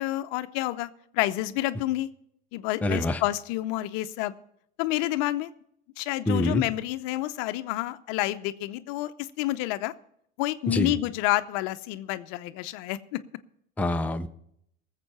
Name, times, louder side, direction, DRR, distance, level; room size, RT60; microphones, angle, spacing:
voice 1, 0.0-2.1 2.5-4.3 4.8-5.5 6.0-9.1 9.4-9.9 10.4-13.2, left 16 dB, 60° left, 12 dB, 0.8 m, -29 dB
voice 2, 2.8-3.2 6.3-6.6 10.7-11.0 13.8-14.3, left 1 dB, 5° left, 6 dB, 0.6 m, -25 dB
18.5 x 7.6 x 5.6 m, 0.72 s
hypercardioid pair, 95°, 34 cm